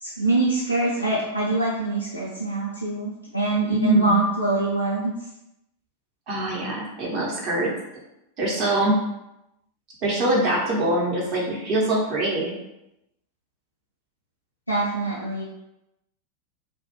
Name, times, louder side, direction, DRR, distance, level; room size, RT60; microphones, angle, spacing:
voice 1, 0.0-5.1 14.7-15.4, right 2 dB, 85° left, -5 dB, 0.4 m, -24 dB
voice 2, 3.7-4.2 6.3-7.7 8.4-9.0 10.0-12.5, right 1 dB, 40° right, -3 dB, 0.8 m, -23 dB
2.3 x 2.1 x 3.0 m, 0.87 s
figure-of-eight pair, 90°, 0 cm